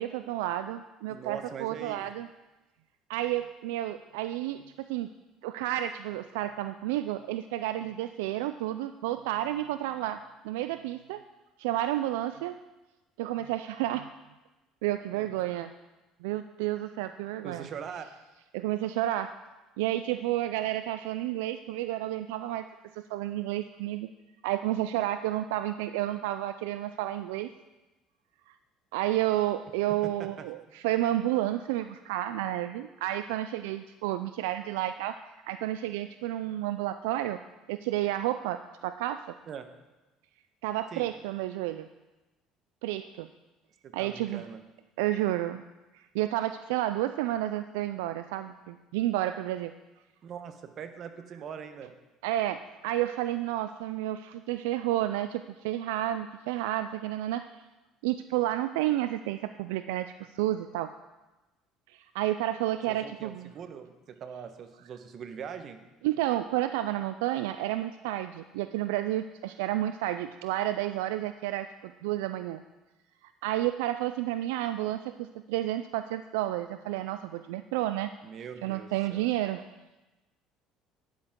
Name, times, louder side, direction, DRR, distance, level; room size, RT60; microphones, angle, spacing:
voice 1, 0.0-2.3 3.1-5.1 5.4-10.2 10.4-11.2 11.6-12.5 13.2-14.1 14.8-15.7 16.2-17.7 18.5-19.3 19.8-22.7 22.9-24.1 24.4-27.5 28.5-28.6 28.9-37.4 37.7-39.3 40.6-41.9 42.8-43.3 43.9-44.4 45.0-45.6 45.9-49.7 52.2-57.5 58.0-60.9 61.9-63.5 66.0-72.6 73.2-78.1 78.6-79.6, right 14 dB, 85° right, 11 dB, 0.3 m, -31 dB
voice 2, 1.1-2.1 15.1-15.3 17.4-18.1 30.0-30.5 39.5-39.6 40.9-41.1 43.8-44.6 50.2-51.9 62.9-65.8 78.2-79.3, right 7 dB, 50° right, 8 dB, 1.1 m, -42 dB
12.0 x 10.0 x 3.7 m, 1.1 s
supercardioid pair, 85°, 0 cm